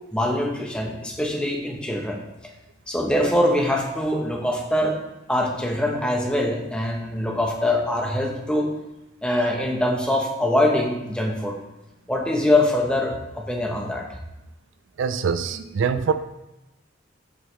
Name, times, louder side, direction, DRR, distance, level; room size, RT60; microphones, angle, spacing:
voice 1, 0.1-2.2 2.9-5.0 5.3-8.7 9.2-11.6 12.1-14.1, left 1 dB, 5° left, 0 dB, 0.9 m, -23 dB
voice 2, 15.0-16.1, right 6 dB, 70° right, 11 dB, 0.4 m, -24 dB
7.8 x 5.6 x 3.2 m, 0.95 s
head